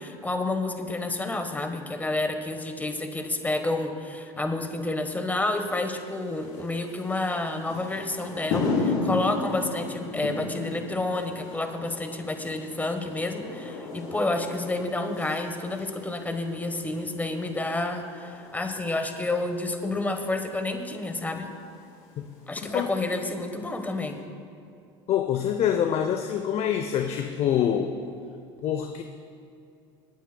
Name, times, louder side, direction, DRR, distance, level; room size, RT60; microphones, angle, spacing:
voice 1, 0.0-21.5 22.5-24.2, left 2 dB, 10° left, 7 dB, 1.2 m, -29 dB
sound 1, 5.5-24.2, left 3 dB, 70° left, 3.1 m, -36 dB
voice 2, 25.1-27.9 28.6-29.0, left 9 dB, 45° left, 6 dB, 0.6 m, -25 dB
26.0 x 9.2 x 2.2 m, 2.6 s
hypercardioid pair, 85°, 15 cm